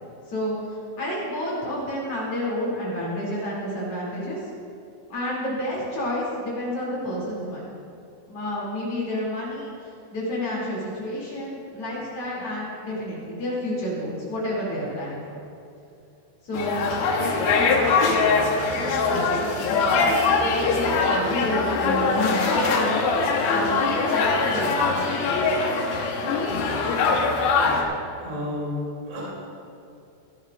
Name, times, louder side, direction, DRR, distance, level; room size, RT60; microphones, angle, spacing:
voice 1, 0.3-4.4 5.1-7.8 8.3-15.2 16.4-16.8 17.1-23.0 23.5-24.9, left 1 dB, 40° left, -6 dB, 2.8 m, -30 dB
sound 1, 16.5-27.8, left 4 dB, 80° left, 2.2 m, -22 dB
voice 2, 28.2-29.2, left 1 dB, 70° right, -6 dB, 4.8 m, -31 dB
18.5 x 11.0 x 2.4 m, 2.6 s
omnidirectional pair, 5.7 m